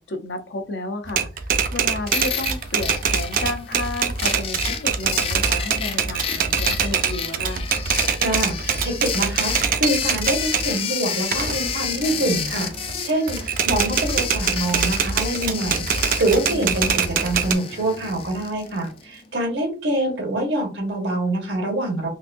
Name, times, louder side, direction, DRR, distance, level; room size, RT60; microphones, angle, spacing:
voice 1, 0.0-7.7, left 2 dB, 75° left, 6 dB, 0.7 m, -32 dB
Typewriter, 1.1-10.7 11.1-12.9 13.3-17.5, right 6 dB, 50° right, 0.4 m, -24 dB
sound 1, 2.1-19.0, left 7 dB, 30° left, 0.4 m, -30 dB
voice 2, 8.2-22.1, right 1 dB, 85° right, 2 dB, 1.4 m, -25 dB
3.9 x 2.6 x 2.6 m, 0.31 s
head